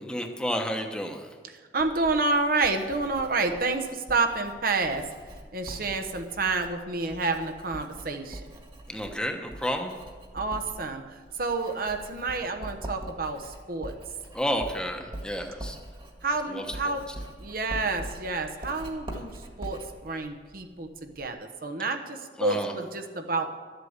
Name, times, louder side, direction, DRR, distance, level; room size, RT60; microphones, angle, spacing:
voice 1, 0.1-1.3 8.9-9.9 14.3-15.8 16.5-17.0 22.4-22.7, equal, 5° left, 3 dB, 1.1 m, -31 dB
voice 2, 1.7-5.1 5.5-8.4 10.3-14.0 16.2-17.0 17.4-19.3 19.6-23.5, right 3 dB, 55° right, 6 dB, 1.1 m, -29 dB
Writing, 1.8-21.3, right 1 dB, 30° right, 1.8 m, -43 dB
12.0 x 8.1 x 8.1 m, 1.5 s
head